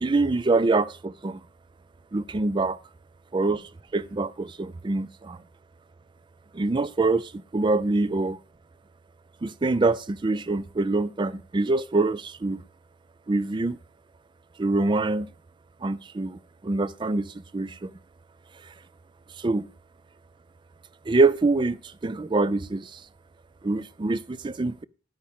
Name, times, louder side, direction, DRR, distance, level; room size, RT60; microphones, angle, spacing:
voice 1, 0.0-1.4 2.1-2.8 3.3-5.4 6.5-8.4 9.4-12.6 13.3-13.8 14.6-15.3 15.8-17.9 19.4-19.7 21.1-23.0 23.6-24.8, right 3 dB, 25° right, 0.4 m, -25 dB
11.0 x 8.7 x 3.5 m
head